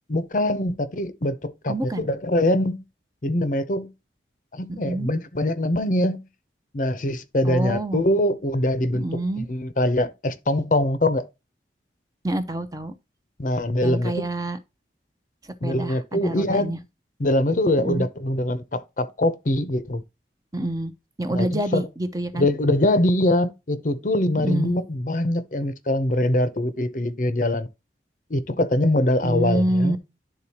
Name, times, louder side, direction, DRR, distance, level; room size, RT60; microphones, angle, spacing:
voice 1, 0.1-2.8 3.2-3.9 4.5-6.2 6.7-11.3 13.4-14.3 15.6-16.7 17.2-20.0 21.3-21.9 22.4-27.7 28.3-30.0, left 1 dB, 45° left, 0.7 m, -23 dB
voice 2, 1.7-2.1 4.7-5.1 7.4-8.1 8.9-9.5 12.2-12.9 13.8-14.6 15.6-16.8 17.8-18.1 20.5-20.9 21.2-22.5 24.3-24.7 29.2-30.0, right 1 dB, 20° right, 0.6 m, -27 dB
11.0 x 3.8 x 2.8 m
head